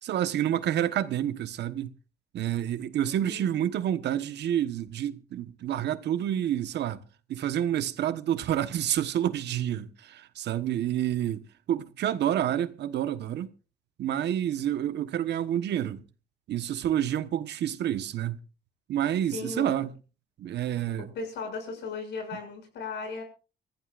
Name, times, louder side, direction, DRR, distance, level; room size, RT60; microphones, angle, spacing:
voice 1, 0.0-1.9 2.3-7.0 7.3-13.5 14.0-16.0 16.5-18.4 18.9-19.9 20.4-21.1, right 11 dB, 80° right, 1.3 m, -28 dB
voice 2, 3.0-3.5 19.3-19.9 21.2-23.2, left 4 dB, 85° left, 6.9 m, -36 dB
25.0 x 15.0 x 2.5 m
cardioid pair, 110°, 17 cm